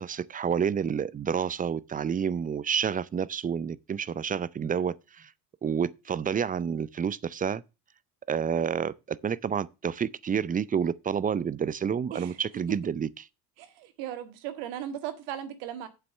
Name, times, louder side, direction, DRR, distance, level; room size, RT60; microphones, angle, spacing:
voice 1, 0.0-5.3 5.6-7.6 8.3-13.2, right 7 dB, 20° right, 0.5 m, -29 dB
voice 2, 13.6-15.9, right 11 dB, 70° right, 1.9 m, -37 dB
7.6 x 5.7 x 6.3 m
hypercardioid pair, 70°, 49 cm